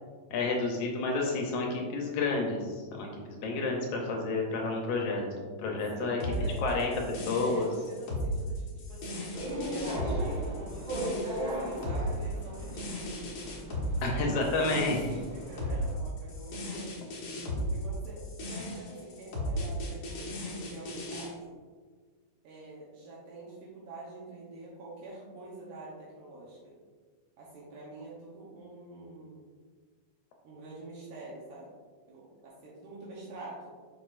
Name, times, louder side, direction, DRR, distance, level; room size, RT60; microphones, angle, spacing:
voice 1, 0.3-6.2 6.6-6.9 7.3-7.7 14.0-15.0, left 3 dB, 75° left, 0 dB, 2.1 m, -30 dB
voice 2, 5.9-7.1 7.4-9.3 9.7-13.3 13.9-16.9 17.6-21.5 22.4-26.7 27.4-29.5 30.4-31.7 32.1-33.7, right 2 dB, 75° right, -6 dB, 2.5 m, -45 dB
sound 1, 6.2-21.3, equal, 50° left, 1.5 m, -35 dB
sound 2, 9.3-15.9, right 1 dB, 55° right, 1.7 m, -38 dB
6.7 x 6.1 x 2.5 m, 1.5 s
omnidirectional pair, 3.7 m